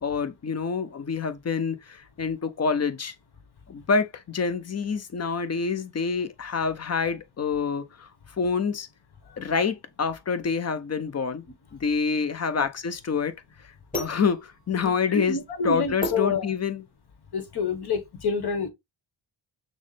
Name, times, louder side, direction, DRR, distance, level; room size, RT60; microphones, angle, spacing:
voice 1, 0.0-3.1 3.7-8.1 8.4-8.9 9.4-11.4 11.7-13.3 13.9-16.8, left 5 dB, 30° left, 0.7 m, -27 dB
sound 1, 12.2-17.1, left 1 dB, 15° left, 1.9 m, -37 dB
voice 2, 14.8-16.5 17.3-18.7, left 4 dB, 50° left, 1.3 m, -28 dB
6.2 x 2.1 x 3.2 m
cardioid pair, 85°, 49 cm